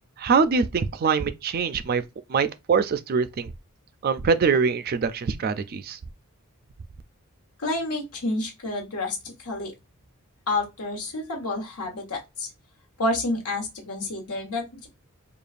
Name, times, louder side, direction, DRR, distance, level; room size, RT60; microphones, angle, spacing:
voice 1, 0.2-2.0 2.3-3.5 4.0-6.0, right 5 dB, 45° right, 0.3 m, -23 dB
voice 2, 7.6-9.7 10.5-12.5 13.0-14.9, left 2 dB, 85° left, 1.3 m, -29 dB
4.9 x 2.3 x 2.4 m
head